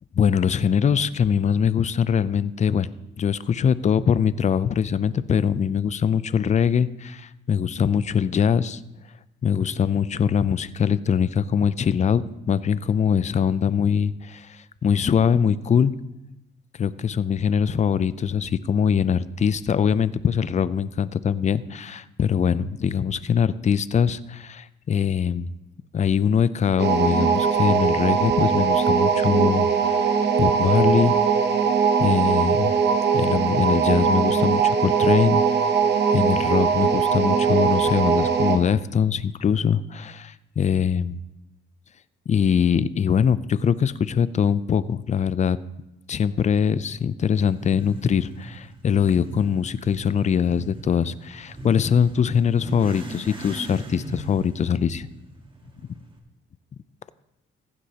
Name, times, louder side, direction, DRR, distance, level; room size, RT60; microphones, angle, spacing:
voice 1, 0.1-2.9 3.2-8.8 9.4-15.9 16.8-25.5 25.9-30.1 30.4-31.2 32.0-32.7 33.1-35.4 36.1-41.2 42.3-45.6 46.1-55.1, left 7 dB, 35° left, 16 dB, 0.5 m, -22 dB
sound 1, 26.8-38.7, right 6 dB, 60° right, 1.0 m, -20 dB
Motorcycle / Accelerating revving vroom, 47.3-56.2, right 2 dB, 25° right, 1.6 m, -40 dB
15.0 x 9.5 x 2.9 m, 0.94 s
cardioid pair, 90°, 20 cm